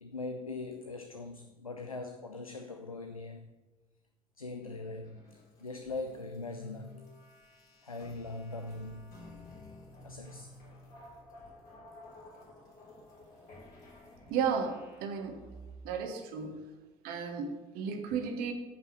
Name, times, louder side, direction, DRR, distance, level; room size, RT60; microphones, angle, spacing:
voice 1, 0.0-3.5 4.4-7.1 7.8-9.2 10.0-10.6, left 3 dB, 90° left, 0.4 m, -41 dB
sound 1, 4.6-15.9, left 1 dB, 55° left, 4.0 m, -53 dB
voice 2, 14.3-15.4 15.8-16.6 17.0-18.5, right 6 dB, 60° right, 1.3 m, -34 dB
8.9 x 5.5 x 7.5 m
figure-of-eight pair, 50°, 17 cm